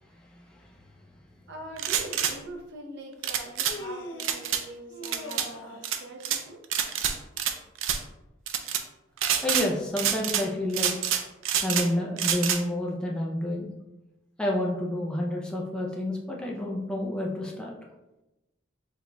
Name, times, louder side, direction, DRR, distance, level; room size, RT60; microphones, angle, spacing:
voice 1, 0.3-0.8 9.4-10.9 11.6-13.7 14.4-17.7, left 1 dB, 5° left, -2 dB, 0.4 m, -29 dB
voice 2, 1.5-6.6, right 1 dB, 60° right, 1 dB, 0.7 m, -43 dB
sound 1, 1.8-2.3 3.2-3.8 4.2-4.6 5.0-5.5 5.8-6.4 6.7-7.5 7.8-8.0 8.5-8.8 9.2-9.7 10.0-10.5 10.7-11.9 12.2-12.6, right 9 dB, 80° right, 0.4 m, -27 dB
Human voice, 3.2-4.4 4.9-5.9, left 1 dB, 65° left, 0.5 m, -41 dB
4.9 x 3.8 x 2.2 m, 0.98 s
head